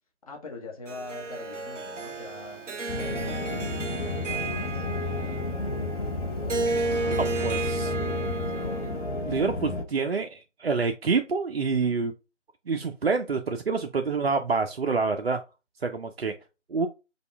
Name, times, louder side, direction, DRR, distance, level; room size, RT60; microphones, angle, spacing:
voice 1, 0.2-2.7 3.0-5.5 7.4-8.9, left 3 dB, 30° left, 0.9 m, -44 dB
sound 1, 0.9-7.7, left 1 dB, ahead, 1.1 m, -52 dB
Harp, 0.9-9.3, right 3 dB, 80° right, 0.8 m, -33 dB
sound 2, 2.9-9.8, left 2 dB, 60° left, 0.8 m, -32 dB
voice 2, 7.1-7.9 9.3-12.1 12.7-15.4 15.8-16.3 16.7-16.9, right 4 dB, 55° right, 0.5 m, -27 dB
5.2 x 2.3 x 3.2 m
figure-of-eight pair, 155°, 36 cm